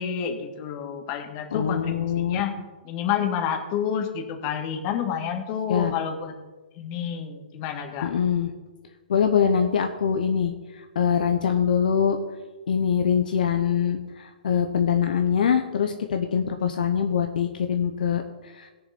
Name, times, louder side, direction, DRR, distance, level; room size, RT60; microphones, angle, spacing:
voice 1, 0.0-2.6 2.8-6.3 6.8-8.1, left 8 dB, 35° left, 5 dB, 1.7 m, -29 dB
voice 2, 1.5-2.4 5.7-5.9 8.0-8.5 9.1-12.2 12.7-18.2 18.6-18.7, left 7 dB, 65° left, 5 dB, 1.0 m, -23 dB
17.0 x 7.0 x 4.2 m, 1.3 s
hypercardioid pair, 135°, 5 cm